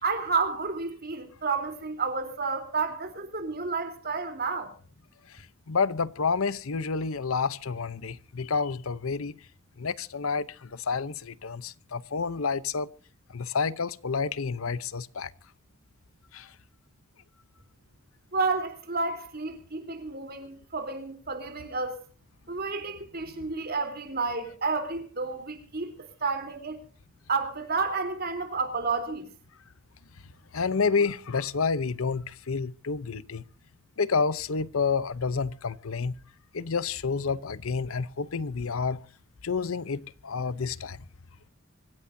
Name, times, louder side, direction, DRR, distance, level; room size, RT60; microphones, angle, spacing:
voice 1, 0.0-4.7 18.3-22.0 22.5-25.9 26.2-26.8 27.3-29.3, right 4 dB, 45° right, 3.5 m, -30 dB
voice 2, 5.7-9.4 9.8-12.9 13.3-15.3 16.3-16.5 30.5-33.4 34.0-36.1 36.5-39.0 39.4-41.0, left 5 dB, 80° left, 0.8 m, -29 dB
25.0 x 15.5 x 2.7 m
head